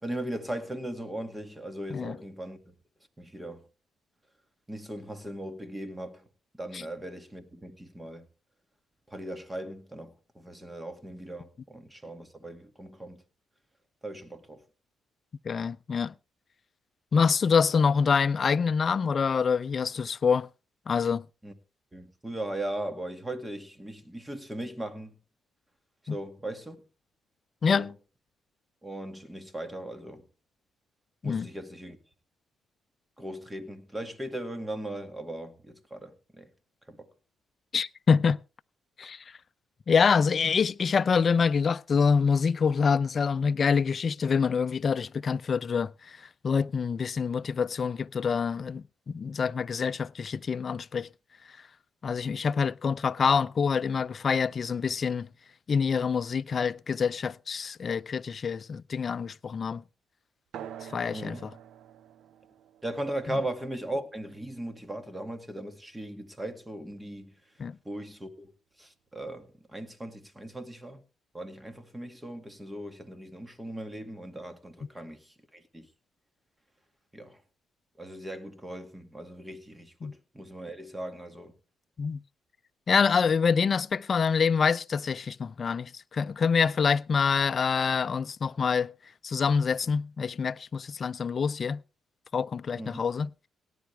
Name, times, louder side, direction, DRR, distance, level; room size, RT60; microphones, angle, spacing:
voice 1, 0.0-2.7 3.2-3.7 4.7-6.3 6.5-8.3 9.1-13.2 14.0-14.6 21.4-21.5 21.9-25.1 26.0-26.8 27.7-27.9 28.8-30.2 31.2-32.0 33.2-36.5 36.9-37.1 61.1-61.5 62.8-67.4 67.8-68.5 68.8-71.0 71.3-75.9 77.1-77.4 78.0-81.5 92.7-93.0, right 1 dB, 10° right, 2.2 m, -38 dB
voice 2, 15.4-16.1 17.1-20.5 20.9-21.2 26.1-26.2 27.6-27.9 31.2-31.5 37.7-38.4 39.0-39.2 39.9-51.1 52.0-55.3 55.7-59.8 60.8-61.5 67.6-67.8 80.0-80.1 82.0-82.2 82.9-88.9 89.2-91.8 92.3-93.3, left 6 dB, 45° left, 0.5 m, -26 dB
sound 1, 60.5-65.6, right 9 dB, 75° right, 0.8 m, -48 dB
18.0 x 10.0 x 3.5 m
cardioid pair, 90°, 0 cm